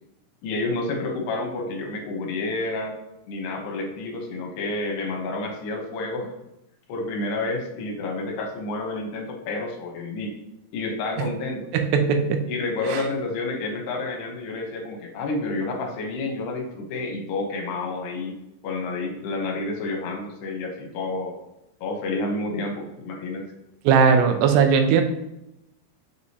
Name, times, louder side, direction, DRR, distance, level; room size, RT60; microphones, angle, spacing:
voice 1, 0.4-3.0 3.3-6.3 6.9-10.3 10.7-11.7 12.5-18.4 18.6-21.3 21.8-23.4 24.1-24.2, left 2 dB, 80° left, 3 dB, 3.0 m, -29 dB
voice 2, 11.7-12.4 12.9-13.0 23.9-25.0, right 6 dB, 90° right, 6 dB, 2.8 m, -18 dB
6.8 x 4.9 x 2.8 m, 0.88 s
omnidirectional pair, 4.7 m